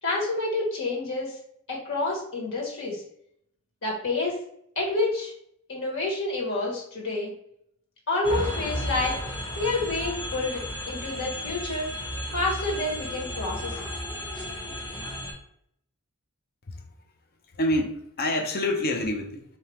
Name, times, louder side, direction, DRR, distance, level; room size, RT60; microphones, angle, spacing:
voice 1, 0.0-1.4 1.7-3.0 3.8-4.4 4.7-5.3 5.7-7.3 8.1-9.2 9.6-10.6 10.9-11.9 12.3-13.9, left 2 dB, 60° left, -3 dB, 1.6 m, -28 dB
sound 1, 8.2-15.3, equal, 20° left, 1.0 m, -33 dB
voice 2, 17.5-19.4, left 1 dB, 45° left, 4 dB, 0.7 m, -27 dB
4.4 x 2.9 x 3.4 m, 0.69 s
head